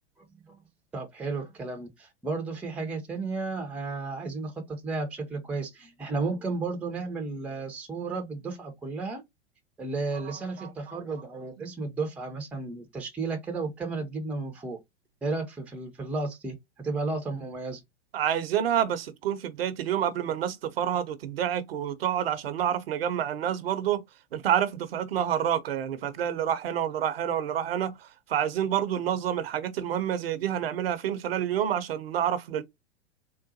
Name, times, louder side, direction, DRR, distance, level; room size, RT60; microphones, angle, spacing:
voice 1, 0.9-9.2 9.8-14.8 15.2-17.8, right 3 dB, 5° right, 0.5 m, -33 dB
voice 2, 10.3-11.0 18.1-24.0 24.3-32.6, right 10 dB, 60° right, 0.6 m, -28 dB
3.8 x 2.1 x 2.6 m
figure-of-eight pair, 100°, 34 cm